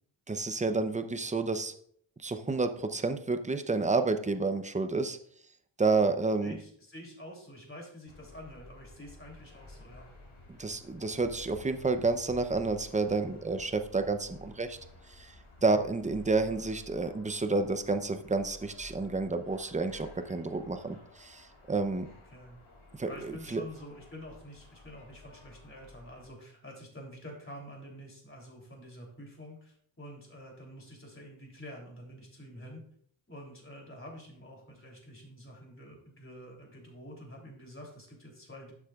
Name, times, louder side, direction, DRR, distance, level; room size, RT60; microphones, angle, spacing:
voice 1, 0.3-1.7 2.2-5.2 5.8-6.6 10.6-14.8 15.1-15.3 15.6-22.1 22.9-23.6, right 3 dB, 15° right, 8 dB, 0.6 m, -30 dB
voice 2, 6.4-10.1 22.3-22.6 23.0-32.8 33.3-38.7, equal, 25° left, -1 dB, 3.2 m, -48 dB
sound 1, 8.1-26.3, left 2 dB, 80° left, 3.5 m, -53 dB
11.5 x 7.5 x 2.4 m, 0.64 s
wide cardioid pair, 90°, 48 cm